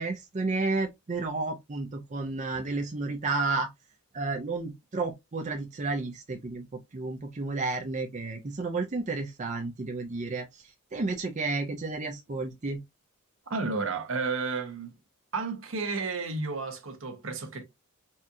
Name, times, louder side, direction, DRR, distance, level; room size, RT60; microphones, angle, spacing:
voice 1, 0.0-3.7 4.1-10.6 10.9-12.8, right 3 dB, 35° right, 0.5 m, -31 dB
voice 2, 13.5-15.0 15.3-17.6, right 4 dB, 65° right, 0.8 m, -32 dB
4.2 x 2.4 x 2.6 m
head